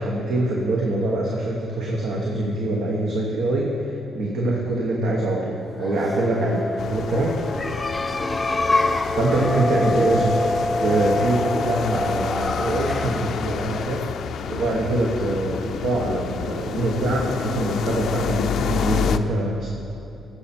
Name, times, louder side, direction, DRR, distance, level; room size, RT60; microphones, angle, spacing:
voice 1, 0.0-7.4 9.1-10.5 10.8-14.1 14.5-19.7, right 1 dB, 75° right, -2 dB, 1.2 m, -24 dB
sound 1, 5.7-15.3, left 2 dB, 20° left, 0.5 m, -26 dB
sound 2, 6.8-19.2, left 7 dB, 70° left, 0.4 m, -29 dB
14.5 x 7.3 x 4.4 m, 2.9 s
cardioid pair, 90°, 0 cm